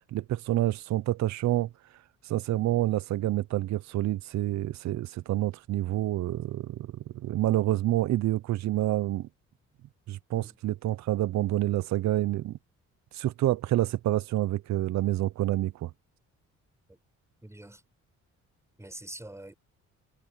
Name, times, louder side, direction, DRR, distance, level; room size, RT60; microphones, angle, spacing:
voice 1, 0.1-1.7 2.2-9.3 10.1-12.6 13.1-15.9, right 14 dB, 65° right, 0.6 m, -28 dB
voice 2, 17.4-17.8 18.8-19.5, right 1 dB, 10° right, 6.3 m, -45 dB
cardioid pair, 90°, 30 cm